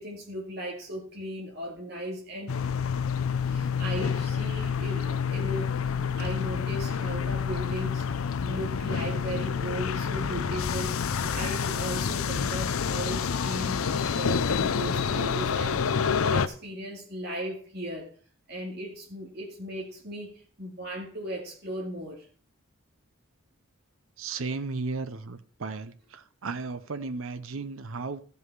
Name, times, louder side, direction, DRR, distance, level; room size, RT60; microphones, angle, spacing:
voice 1, 0.0-2.5 3.5-8.0 8.4-18.1 18.5-20.3 20.6-22.2, equal, 50° right, -2 dB, 2.4 m, -37 dB
sound 1, 2.5-16.5, left 6 dB, 85° left, 0.6 m, -28 dB
voice 2, 24.2-28.2, right 4 dB, 75° right, 11 dB, 0.7 m, -35 dB
15.0 x 5.5 x 4.6 m, 0.43 s
head